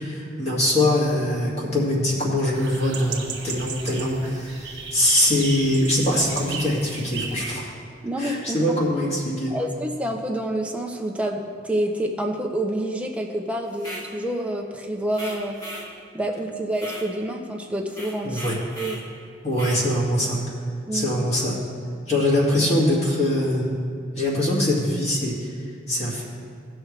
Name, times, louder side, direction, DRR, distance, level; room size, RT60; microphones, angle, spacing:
voice 1, 0.0-7.7 8.2-9.6 18.2-18.6 19.4-20.4 20.9-21.6 22.1-23.8 24.2-25.4 25.9-26.2, left 1 dB, 35° left, -5 dB, 2.2 m, -23 dB
sound 1, 2.5-7.5, right 5 dB, 65° right, 1.4 m, -35 dB
voice 2, 8.0-8.6 9.5-15.5 16.1-18.4 18.7-18.9 20.9-21.1, right 1 dB, 5° right, 1 dB, 0.8 m, -28 dB
sound 2, 13.7-14.1 15.1-15.9 16.7-17.1 17.9-19.0 19.5-19.8, equal, 20° left, 2.1 m, -37 dB
17.5 x 6.2 x 3.3 m, 2.2 s
head